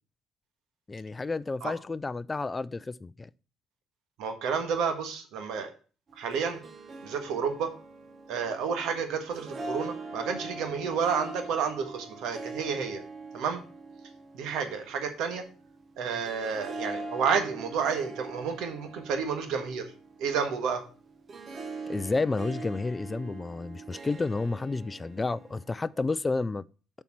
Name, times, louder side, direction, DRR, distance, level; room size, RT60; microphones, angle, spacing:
voice 1, 0.9-3.3 21.9-26.6, left 3 dB, 25° left, 0.3 m, -31 dB
voice 2, 4.2-5.7 6.2-6.6 7.0-7.7 8.3-13.0 13.3-13.6 14.3-15.4 16.0-19.9 20.2-20.8, right 6 dB, 75° right, 1.5 m, -30 dB
Harp, 6.1-25.9, right 3 dB, 45° right, 1.0 m, -43 dB
7.1 x 4.4 x 5.8 m
supercardioid pair, 85°, 0 cm